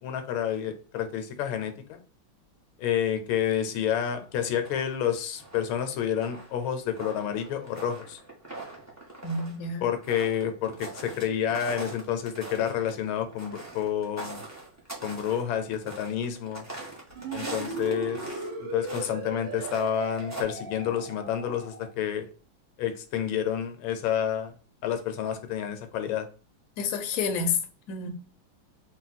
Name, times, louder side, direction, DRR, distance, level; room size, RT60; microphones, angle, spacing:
voice 1, 0.0-2.0 2.8-8.2 9.8-14.4 15.0-16.7 17.3-22.3 22.8-24.5 24.8-26.3, left 9 dB, 80° left, 1.4 m, -29 dB
sound 1, 4.0-5.0 5.4-11.2 11.5-18.5 18.8-19.1 19.5-20.4, right 2 dB, 25° right, 0.3 m, -42 dB
voice 2, 9.2-9.8 26.8-27.6 27.9-28.1, left 5 dB, 60° left, 0.9 m, -29 dB
sound 2, 17.1-21.9, right 3 dB, 70° right, 1.5 m, -37 dB
4.0 x 2.2 x 4.1 m
omnidirectional pair, 2.2 m